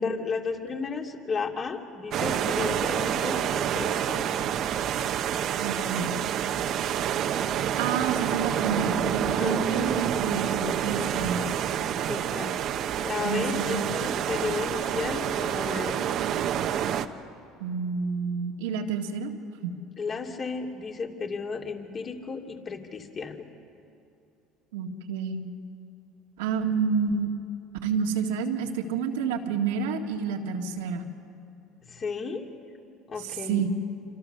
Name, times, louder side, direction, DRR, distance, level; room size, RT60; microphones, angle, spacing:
voice 1, 0.0-4.3 9.4-9.9 12.0-12.6 13.0-16.1 20.0-23.5 31.8-32.5 33.1-33.7, left 4 dB, 35° left, 2 dB, 2.6 m, -33 dB
sound 1, 2.1-17.1, right 9 dB, 55° right, 1.0 m, -28 dB
voice 2, 5.6-6.2 7.8-11.4 13.2-13.9 17.6-19.3 19.6-19.8 24.7-25.5 26.4-27.3 27.8-31.0 33.2-33.7, right 5 dB, 90° right, 2 dB, 1.9 m, -29 dB
27.5 x 25.5 x 6.7 m, 2.6 s
supercardioid pair, 95°, 0 cm